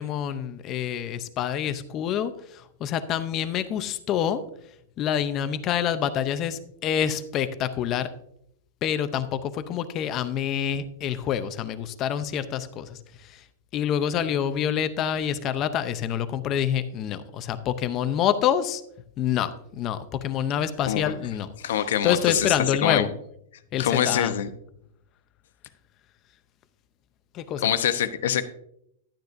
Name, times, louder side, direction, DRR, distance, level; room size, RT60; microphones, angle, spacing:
voice 1, 0.0-2.3 2.8-4.4 5.0-8.1 8.8-13.0 13.7-18.8 19.2-21.5 22.0-23.1 23.7-24.3 27.3-27.6, left 9 dB, 25° left, 12 dB, 0.6 m, -26 dB
voice 2, 21.6-23.1 23.8-24.5 27.6-28.4, left 9 dB, 70° left, 10 dB, 0.9 m, -24 dB
11.5 x 9.4 x 2.6 m, 0.75 s
supercardioid pair, 165°, 0 cm